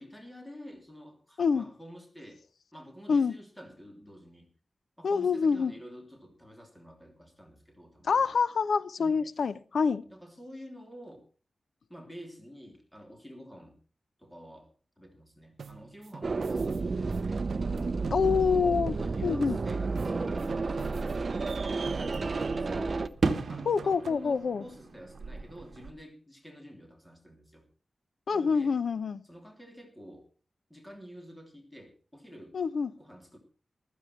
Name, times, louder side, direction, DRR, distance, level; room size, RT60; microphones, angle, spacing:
voice 1, 0.0-2.4 2.7-4.5 5.0-8.3 9.0-9.1 10.1-11.2 11.9-13.8 14.2-17.4 17.9-18.4 18.9-23.1 23.5-27.7 28.3-28.7 29.2-30.3 30.7-32.6 33.0-33.4, equal, 5° left, 3.0 m, -49 dB
voice 2, 5.0-5.7 8.0-10.0 18.1-19.0 19.2-19.6 23.7-24.6 28.3-29.2 32.5-32.9, left 5 dB, 75° left, 0.7 m, -26 dB
sound 1, 15.6-18.6 18.9-21.6 21.9-22.9 23.2-24.3, right 6 dB, 90° right, 0.7 m, -46 dB
sound 2, 16.2-23.1, right 3 dB, 40° right, 0.7 m, -31 dB
sound 3, 19.9-25.9, right 4 dB, 60° right, 1.3 m, -37 dB
15.0 x 13.5 x 4.5 m
wide cardioid pair, 165°, 0 cm